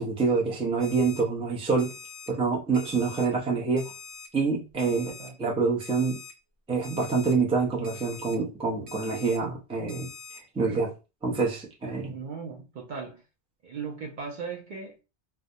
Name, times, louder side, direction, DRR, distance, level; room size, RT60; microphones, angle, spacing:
voice 1, 0.0-1.9 2.3-3.9 4.3-5.1 5.4-6.2 6.7-10.1 10.5-10.9 11.2-12.1, right 4 dB, 10° right, 0.4 m, -26 dB
Alarm, 0.8-1.2 1.8-2.3 2.7-3.2 3.8-4.3 4.8-5.3 5.8-6.3 6.8-7.3 7.8-8.3 8.9-9.4 9.9-10.4, left 5 dB, 85° right, 1.1 m, -44 dB
voice 2, 4.8-5.4 12.1-13.2 13.6-15.0, right 5 dB, 55° right, 0.6 m, -38 dB
2.2 x 2.1 x 2.6 m
omnidirectional pair, 1.1 m